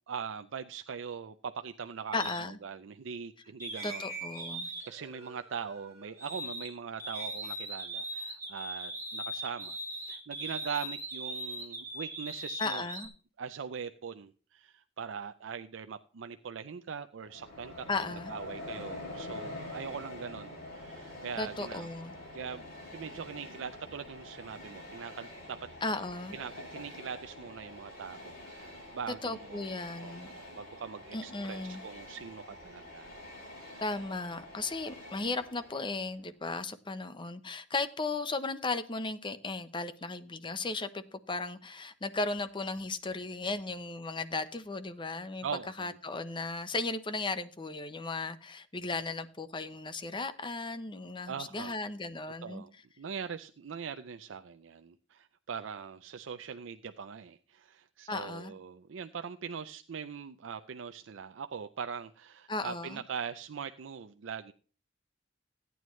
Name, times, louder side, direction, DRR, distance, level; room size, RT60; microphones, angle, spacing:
voice 1, 0.1-2.2 2.6-4.0 4.6-12.9 13.4-17.9 18.1-21.9 22.3-22.6 22.9-25.6 25.9-26.1 26.3-29.7 30.0-33.2 33.7-33.8 45.4-45.9 51.3-51.7 52.4-52.7 53.0-64.5, right 6 dB, 85° right, 0.5 m, -41 dB
voice 2, 2.1-2.6 3.8-4.7 12.6-13.1 17.9-18.3 21.4-22.1 25.8-26.4 29.2-30.3 31.1-31.8 33.8-45.4 45.8-52.6 58.1-58.5 62.5-63.0, left 3 dB, 25° left, 0.7 m, -36 dB
sound 1, 2.2-2.4 3.6-6.7 7.0-13.1, right 1 dB, 15° right, 3.7 m, -40 dB
Train, 17.2-36.1, left 1 dB, 50° left, 6.6 m, -46 dB
15.5 x 9.3 x 3.1 m
head